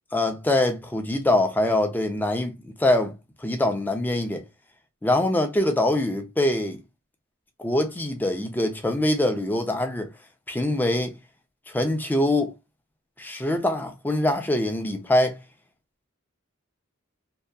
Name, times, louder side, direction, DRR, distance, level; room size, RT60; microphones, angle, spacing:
voice 1, 0.1-4.4 5.0-6.8 7.6-10.1 10.5-11.1 11.7-12.5 13.2-15.4, left 1 dB, 10° left, 0.4 m, -24 dB
2.7 x 2.2 x 2.2 m
head